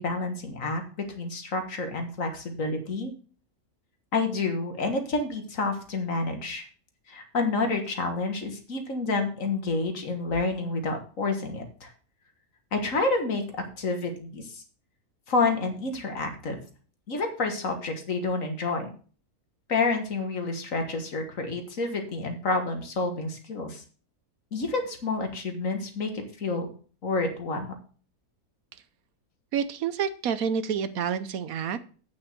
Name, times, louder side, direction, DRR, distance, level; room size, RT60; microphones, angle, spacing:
voice 1, 0.0-3.1 4.1-6.7 7.1-11.9 12.7-14.6 15.3-16.6 17.1-18.9 19.7-23.8 24.5-26.7 27.0-27.7, left 3 dB, 60° left, 6 dB, 2.0 m, -29 dB
voice 2, 29.5-31.8, right 7 dB, 70° right, 13 dB, 1.2 m, -28 dB
8.6 x 6.2 x 6.6 m, 0.40 s
omnidirectional pair, 1.6 m